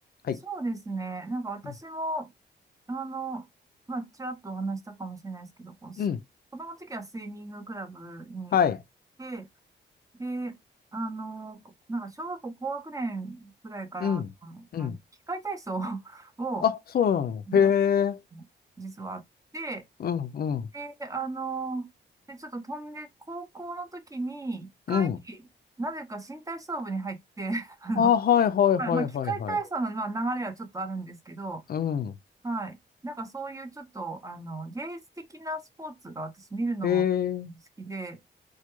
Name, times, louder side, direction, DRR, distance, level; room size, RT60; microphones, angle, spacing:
voice 1, 0.4-2.3 2.9-3.5 3.9-6.0 6.5-8.6 9.2-9.5 10.1-10.6 10.9-11.6 11.9-15.0 15.3-16.6 17.5-17.7 18.3-18.4 18.8-19.2 19.5-19.8 20.7-21.9 22.3-25.4 25.8-28.1 28.8-31.6 32.4-32.8 33.0-37.0 37.5-38.2, right 3 dB, 15° right, 0.6 m, -35 dB
voice 2, 16.6-18.2 20.0-20.7 24.9-25.2 28.0-29.6 31.7-32.1 36.8-37.5, left 8 dB, 55° left, 0.4 m, -24 dB
2.2 x 2.2 x 2.9 m
cardioid pair, 85°, 19 cm